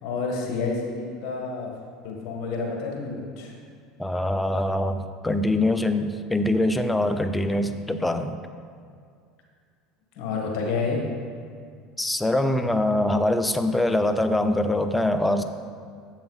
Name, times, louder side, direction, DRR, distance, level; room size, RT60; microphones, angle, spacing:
voice 1, 0.0-1.7 2.0-3.5 10.2-11.0, left 4 dB, 60° left, 0 dB, 1.6 m, -29 dB
voice 2, 4.0-8.4 12.0-15.4, left 1 dB, 10° left, 9 dB, 0.5 m, -23 dB
7.8 x 7.0 x 4.1 m, 2.2 s
supercardioid pair, 95°, 0 cm